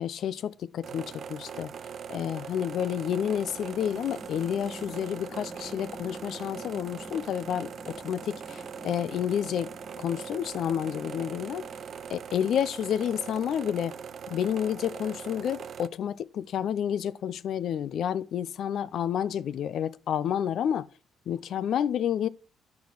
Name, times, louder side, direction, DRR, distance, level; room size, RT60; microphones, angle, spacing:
voice 1, 0.0-1.7 2.1-11.7 12.1-13.9 14.3-20.9 21.3-22.3, left 9 dB, 70° left, 0.5 m, -30 dB
sound 1, 0.8-15.9, right 7 dB, 60° right, 0.5 m, -41 dB
sound 2, 2.9-12.3, left 1 dB, 5° left, 1.6 m, -48 dB
9.5 x 7.1 x 5.9 m
cardioid pair, 90°, 0 cm